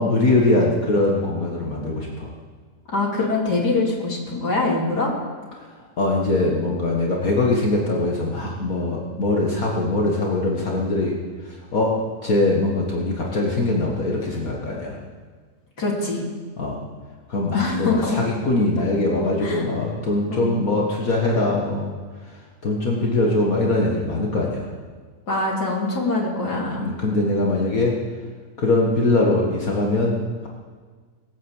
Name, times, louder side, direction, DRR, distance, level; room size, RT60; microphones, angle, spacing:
voice 1, 0.0-2.3 6.0-11.2 11.4-15.0 16.6-16.8 17.3-21.9 22.2-22.4 22.6-24.7 26.8-28.0 28.6-30.5, left 2 dB, 60° left, -2 dB, 2.1 m, -22 dB
voice 2, 2.9-5.1 15.8-16.3 17.5-18.2 19.4-19.6 20.3-20.8 25.3-27.0, left 3 dB, 80° left, -3 dB, 3.8 m, -24 dB
20.0 x 9.1 x 7.3 m, 1.6 s
omnidirectional pair, 1.7 m